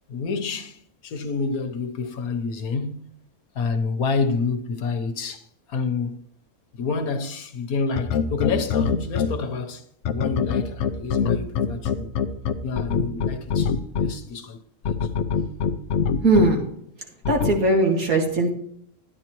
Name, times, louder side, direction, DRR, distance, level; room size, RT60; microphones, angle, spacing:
voice 1, 0.1-3.1 3.5-6.2 6.7-9.8 10.1-12.1 12.6-14.6 14.9-15.1, left 4 dB, 85° left, 1.5 m, -28 dB
sound 1, 8.0-9.3 10.0-14.1 14.8-16.5 17.2-17.5, left 7 dB, 65° left, 0.8 m, -22 dB
voice 2, 16.2-16.6 17.3-18.5, right 2 dB, 80° right, 2.4 m, -19 dB
12.5 x 9.5 x 3.0 m
omnidirectional pair, 1.5 m